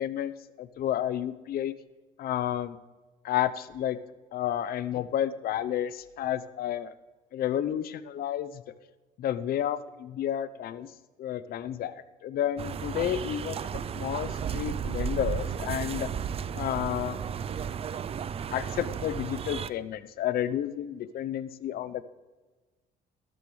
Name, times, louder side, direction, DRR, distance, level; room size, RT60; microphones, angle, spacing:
voice 1, 0.0-1.7 2.2-2.8 3.2-4.0 4.3-6.9 7.3-8.6 9.2-10.9 11.2-16.1 16.5-17.2 18.5-22.0, left 11 dB, 60° left, 15 dB, 0.7 m, -31 dB
sound 1, 12.6-19.7, right 7 dB, 35° right, 0.4 m, -34 dB
15.0 x 13.5 x 3.2 m, 1.3 s
cardioid pair, 110°, 17 cm